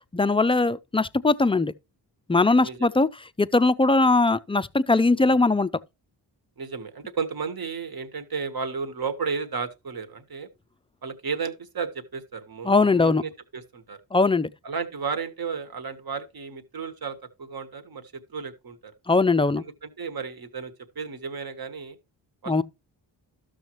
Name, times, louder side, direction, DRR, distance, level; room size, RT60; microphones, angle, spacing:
voice 1, 0.1-1.7 2.3-3.1 3.4-5.7 12.7-13.2 14.1-14.5 19.1-19.6 22.5-22.6, left 3 dB, 15° left, 0.4 m, -20 dB
voice 2, 6.6-10.5 11.0-14.0 14.6-18.9 19.6-22.0 22.4-22.6, right 5 dB, 55° right, 1.3 m, -33 dB
12.5 x 6.3 x 3.0 m
cardioid pair, 45°, 44 cm